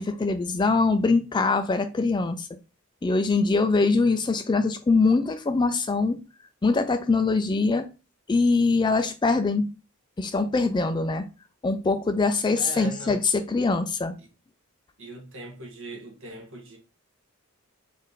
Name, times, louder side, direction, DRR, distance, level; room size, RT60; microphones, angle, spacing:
voice 1, 0.0-2.5 3.0-6.2 6.6-7.9 8.3-9.7 10.2-11.2 11.6-14.1, left 3 dB, 20° left, 0.3 m, -23 dB
voice 2, 12.6-13.2 14.2-14.3 15.0-16.8, right 1 dB, 65° right, 1.3 m, -40 dB
4.1 x 2.5 x 3.9 m
head